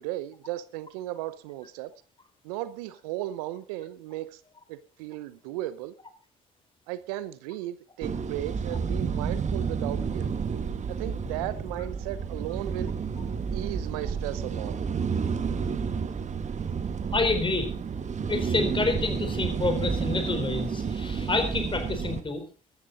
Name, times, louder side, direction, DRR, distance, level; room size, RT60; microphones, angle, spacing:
voice 1, 0.0-1.9 2.4-4.4 4.7-5.9 6.9-10.3 10.9-12.9 13.5-14.8, right 14 dB, 80° right, 0.8 m, -36 dB
sound 1, 8.0-22.2, right 6 dB, 40° right, 1.5 m, -30 dB
voice 2, 17.1-17.7 18.3-22.4, left 3 dB, 25° left, 4.0 m, -28 dB
14.0 x 13.5 x 4.0 m
hypercardioid pair, 55°, 19 cm